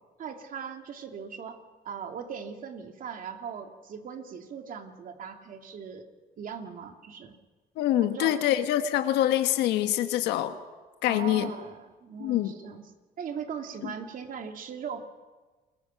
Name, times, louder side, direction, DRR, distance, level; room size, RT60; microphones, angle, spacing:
voice 1, 0.2-6.1 6.4-7.3 8.0-8.4 11.1-12.9 13.2-15.0, right 7 dB, 55° right, 5 dB, 2.7 m, -39 dB
voice 2, 7.8-10.5 11.0-11.5 12.2-12.5 13.8-13.9, left 12 dB, 85° left, 9 dB, 1.3 m, -25 dB
28.5 x 22.0 x 5.8 m, 1.3 s
cardioid pair, 110°, 17 cm